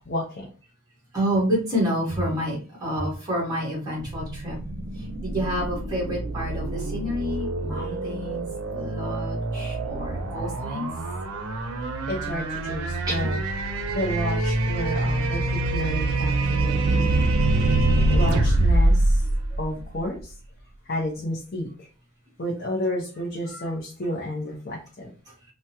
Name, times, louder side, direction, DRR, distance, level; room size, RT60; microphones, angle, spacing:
voice 1, 0.1-0.5 7.7-8.0 12.1-13.4 13.9-17.2 18.1-19.2 19.6-20.3 20.9-21.9 22.4-25.1, left 1 dB, 45° left, -2 dB, 0.6 m, -31 dB
voice 2, 1.1-4.6 5.0-8.4 8.7-10.9 13.1-13.3 19.2-19.3, equal, 15° right, -5 dB, 1.3 m, -29 dB
sound 1, 4.0-20.2, right 2 dB, 80° right, 0.5 m, -25 dB
3.4 x 2.1 x 2.8 m, 0.37 s
head